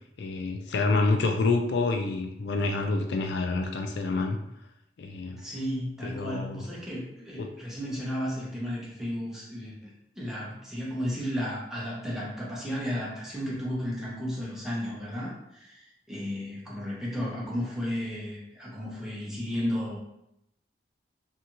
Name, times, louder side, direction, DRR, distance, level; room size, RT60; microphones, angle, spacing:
voice 1, 0.2-4.4 5.0-5.4 6.0-6.6 7.4-7.5, left 3 dB, 75° left, 4 dB, 0.3 m, -27 dB
voice 2, 5.4-9.9 10.2-20.0, equal, 5° right, -6 dB, 0.6 m, -33 dB
2.6 x 2.3 x 2.8 m, 0.81 s
head